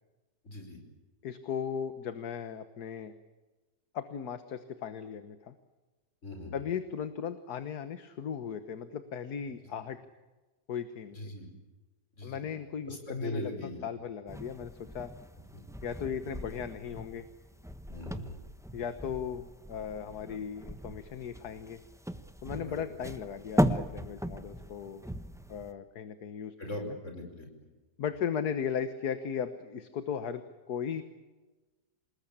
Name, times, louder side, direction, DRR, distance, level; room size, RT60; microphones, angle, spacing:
voice 1, 0.4-0.8 6.2-6.6 11.1-11.5 12.2-12.4 12.9-13.8 17.9-18.4 22.5-22.8 26.6-27.7, left 1 dB, 40° left, 4 dB, 5.6 m, -40 dB
voice 2, 1.2-3.1 3.9-5.6 6.5-10.0 10.7-11.3 12.2-15.1 15.8-17.3 18.7-21.8 22.4-25.0 25.5-27.0 28.0-30.4 30.7-31.0, left 7 dB, 60° left, 10 dB, 1.7 m, -37 dB
sound 1, 14.3-25.7, equal, 5° right, 0.6 m, -37 dB
27.5 x 20.5 x 8.7 m, 1.2 s
omnidirectional pair, 2.0 m